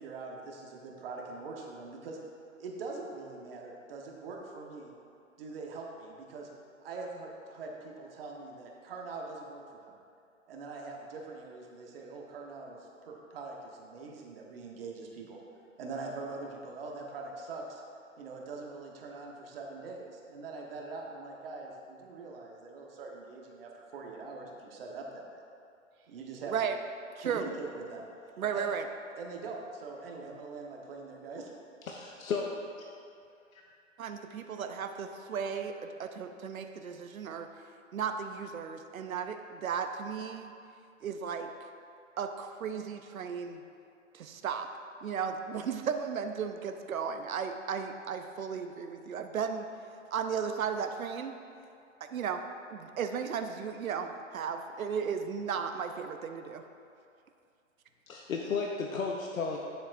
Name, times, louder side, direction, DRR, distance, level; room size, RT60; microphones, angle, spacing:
voice 1, 0.0-2.2 2.6-4.9 5.4-6.5 6.8-10.0 10.5-13.6 13.9-15.4 15.8-17.8 18.2-25.4 26.0-26.5 27.2-28.0 28.5-28.7 29.2-31.5, right 3 dB, 45° right, 0 dB, 1.1 m, -43 dB
voice 2, 28.4-28.9 34.0-37.5 37.9-40.5 41.0-41.5 42.2-43.6 44.1-44.7 45.0-49.7 50.1-51.3 52.0-52.4 52.7-56.6, right 7 dB, 90° right, 7 dB, 0.7 m, -35 dB
voice 3, 31.9-32.9 33.5-33.6 58.1-59.6, left 5 dB, 85° left, 0 dB, 0.8 m, -34 dB
10.0 x 7.1 x 2.5 m, 2.4 s
hypercardioid pair, 145°, 40 cm